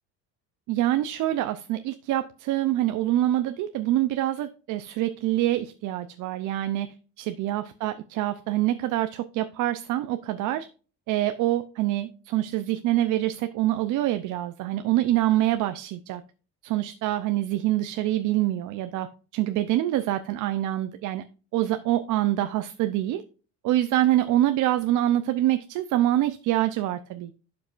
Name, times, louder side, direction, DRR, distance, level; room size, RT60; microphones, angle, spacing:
voice 1, 0.7-10.7 11.1-16.2 16.6-21.2 21.5-23.2 23.6-27.4, right 14 dB, 70° right, 0.7 m, -25 dB
11.5 x 5.3 x 2.5 m
cardioid pair, 115°, 32 cm